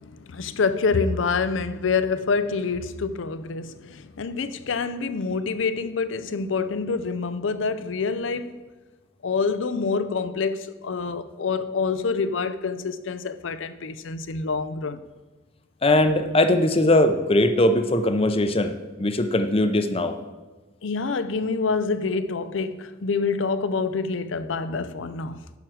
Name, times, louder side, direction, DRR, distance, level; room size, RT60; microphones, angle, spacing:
voice 1, 0.1-8.6 9.2-15.0 20.8-25.4, left 4 dB, 75° left, 0.5 m, -26 dB
voice 2, 15.8-18.7 19.0-20.2, left 1 dB, 30° left, 0.6 m, -20 dB
10.5 x 4.7 x 6.3 m
head